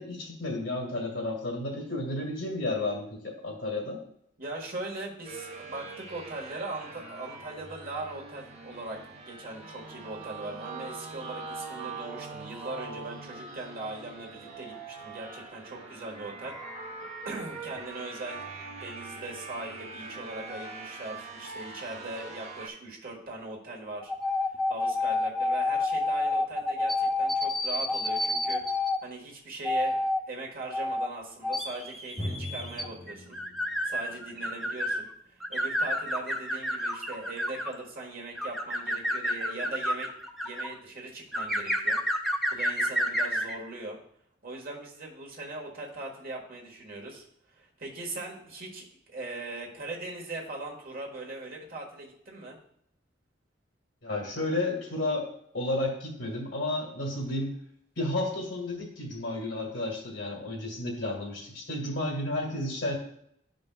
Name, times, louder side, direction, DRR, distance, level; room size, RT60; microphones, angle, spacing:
voice 1, 0.0-4.0 54.0-55.3 55.5-57.5 58.0-63.0, left 2 dB, 75° left, -2 dB, 2.3 m, -32 dB
voice 2, 4.4-16.6 17.2-24.1 24.5-30.0 30.3-33.4 33.8-40.1 40.4-44.0 44.4-52.6, right 2 dB, 50° right, -1 dB, 1.5 m, -40 dB
sound 1, 5.2-22.7, right 4 dB, 35° right, 1.0 m, -42 dB
sound 2, 24.0-29.0 29.6-30.2 30.7-31.1 31.4-35.0 35.4-37.8 38.4-40.7 41.3-43.5, left 1 dB, ahead, 0.6 m, -29 dB
Drum, 32.2-35.7, left 1 dB, 30° left, 2.2 m, -41 dB
11.5 x 5.2 x 2.3 m, 0.69 s
head